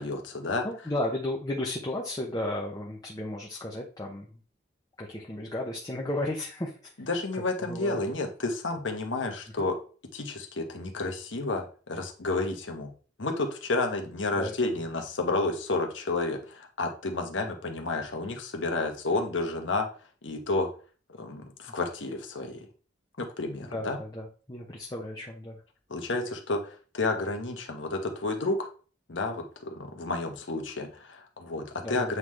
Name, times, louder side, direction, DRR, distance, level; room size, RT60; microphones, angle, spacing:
voice 1, 0.0-0.7 7.1-9.8 10.1-12.9 13.2-19.9 20.2-20.7 21.2-22.6 23.2-24.0 25.9-28.7 29.1-32.2, left 2 dB, 90° left, 4 dB, 1.2 m, -31 dB
voice 2, 0.6-4.4 5.0-6.8 7.6-8.0 9.6-9.7 14.3-14.5 21.7-21.8 23.7-25.6 31.8-32.2, left 1 dB, 20° left, -1 dB, 0.9 m, -34 dB
8.0 x 3.7 x 3.2 m, 0.39 s
head